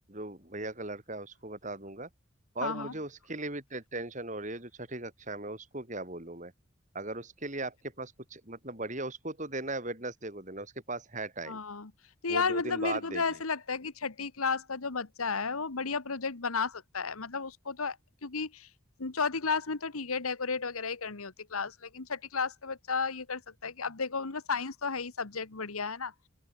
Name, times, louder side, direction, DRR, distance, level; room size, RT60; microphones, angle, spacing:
voice 1, 0.1-2.1 2.6-6.5 6.9-11.6 12.3-13.4, right 2 dB, 35° right, 3.8 m, -38 dB
voice 2, 2.6-2.9 11.5-11.9 12.2-18.0 18.2-18.7 19.0-26.1, left 5 dB, 90° left, 1.5 m, -33 dB
open air
head